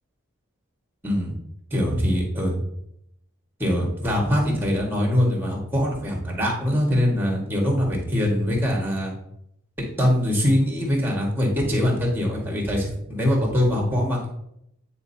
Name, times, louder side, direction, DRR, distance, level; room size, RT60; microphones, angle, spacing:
voice 1, 1.0-1.3 1.7-2.6 3.6-9.1 10.0-14.3, equal, 10° right, -1 dB, 1.5 m, -23 dB
9.3 x 4.2 x 2.8 m, 0.77 s
head